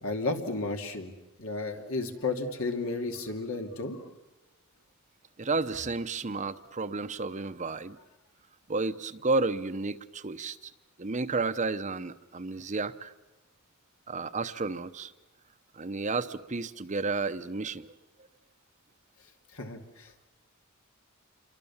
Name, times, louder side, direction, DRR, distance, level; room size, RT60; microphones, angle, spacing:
voice 1, 0.0-1.1 1.4-4.1 19.5-20.3, left 3 dB, 80° left, 4 dB, 2.6 m, -33 dB
voice 2, 5.4-8.0 8.7-10.7 11.0-13.1 14.1-15.1 15.7-17.9, right 3 dB, 35° right, 11 dB, 0.8 m, -32 dB
28.0 x 23.5 x 7.3 m, 1.0 s
head